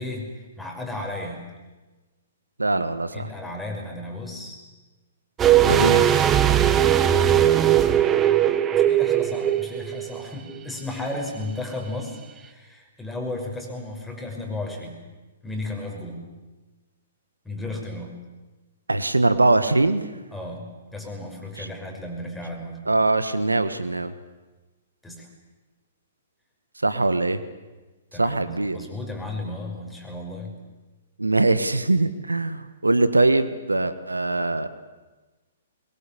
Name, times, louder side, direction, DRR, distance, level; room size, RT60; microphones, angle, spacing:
voice 1, 0.0-1.5 3.1-4.6 7.5-15.0 15.4-16.3 17.4-18.2 20.3-22.8 25.0-25.3 28.1-30.6, left 2 dB, 5° left, 0 dB, 6.1 m, -34 dB
voice 2, 2.6-3.3 5.6-6.3 18.9-20.0 21.6-21.7 22.9-24.1 26.8-27.4 28.2-28.8 31.2-34.7, right 2 dB, 90° right, 12 dB, 1.4 m, -22 dB
sound 1, 5.4-10.2 10.5-10.6, right 11 dB, 20° right, 1.3 m, -19 dB
22.5 x 22.5 x 8.5 m, 1.2 s
figure-of-eight pair, 120°, 0 cm